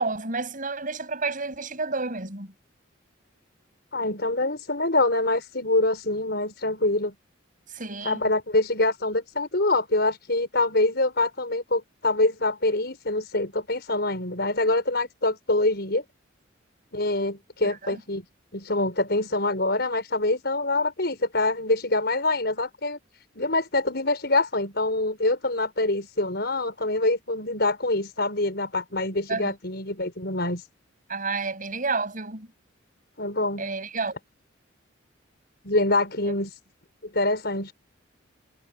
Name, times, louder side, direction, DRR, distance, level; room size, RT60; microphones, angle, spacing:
voice 1, 0.0-2.5 7.7-8.2 17.8-18.0 29.3-29.5 31.1-32.5 33.6-34.1 36.3-36.4, right 3 dB, 40° right, 7.4 m, -30 dB
voice 2, 3.9-7.1 8.0-16.0 16.9-18.2 18.5-23.0 23.4-30.7 33.2-33.6 35.6-36.6 37.0-37.7, left 2 dB, 55° left, 6.1 m, -25 dB
head